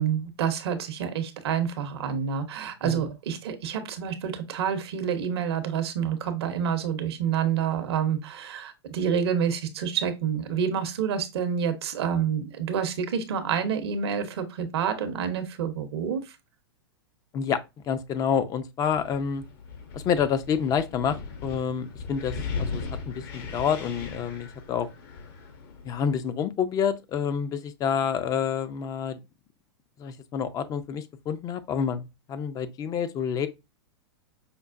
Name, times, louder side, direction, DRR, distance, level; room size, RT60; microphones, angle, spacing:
voice 1, 0.0-16.2, right 8 dB, 70° right, 0.7 m, -28 dB
voice 2, 17.8-19.4 19.9-24.9 25.8-29.2 30.0-33.5, left 7 dB, 25° left, 0.4 m, -28 dB
Wind, 18.9-26.2, left 4 dB, 50° left, 0.9 m, -38 dB
5.2 x 2.1 x 2.4 m
hypercardioid pair, 105°, 14 cm